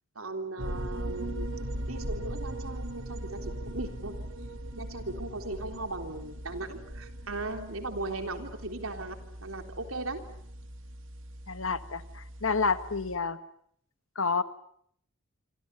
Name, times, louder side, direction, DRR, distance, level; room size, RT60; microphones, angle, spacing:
voice 1, 0.2-1.5 1.9-4.1 4.8-10.2, right 2 dB, 90° right, 6 dB, 3.7 m, -38 dB
sound 1, 0.6-13.2, right 1 dB, 65° right, 3.3 m, -39 dB
voice 2, 11.5-13.4 14.1-14.4, left 4 dB, 75° left, 11 dB, 1.6 m, -29 dB
27.0 x 26.0 x 6.9 m, 0.65 s
head